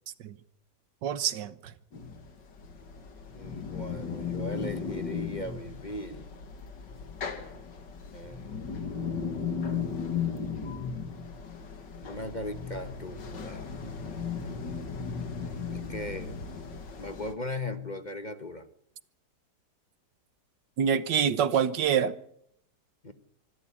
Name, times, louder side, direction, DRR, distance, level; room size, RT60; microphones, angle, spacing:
voice 1, 1.0-1.7 20.8-22.1, right 8 dB, 80° right, 1.7 m, -26 dB
sound 1, 1.9-17.3, left 6 dB, 80° left, 2.6 m, -36 dB
voice 2, 3.3-6.3 8.1-8.6 12.0-13.7 15.7-16.4 17.0-18.7 23.0-23.1, left 1 dB, 30° left, 1.2 m, -38 dB
25.5 x 12.5 x 8.6 m
omnidirectional pair, 1.9 m